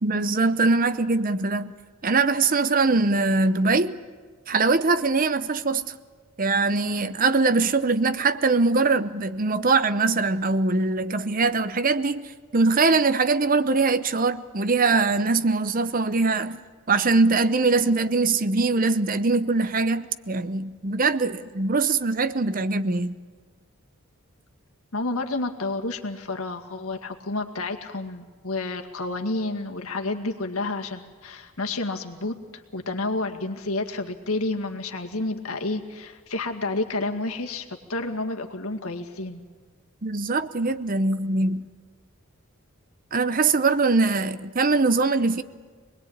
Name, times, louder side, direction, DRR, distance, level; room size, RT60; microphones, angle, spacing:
voice 1, 0.0-1.7 2.0-4.0 4.5-6.0 6.4-16.6 16.9-23.2 40.0-41.7 43.1-45.4, right 3 dB, 40° right, 0.8 m, -22 dB
voice 2, 24.9-39.5, left 2 dB, 80° left, 2.0 m, -30 dB
26.5 x 20.5 x 8.8 m
head